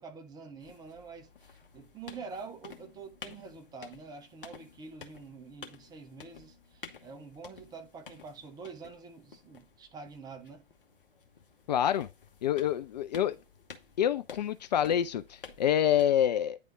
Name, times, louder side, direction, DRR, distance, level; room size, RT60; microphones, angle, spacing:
voice 1, 0.0-10.7, right 4 dB, 15° right, 0.7 m, -46 dB
sound 1, 0.6-16.0, left 6 dB, 65° left, 1.2 m, -52 dB
voice 2, 11.7-12.1 12.4-13.4 14.0-16.6, left 10 dB, 45° left, 0.4 m, -27 dB
9.4 x 3.4 x 3.7 m
figure-of-eight pair, 105°, 30 cm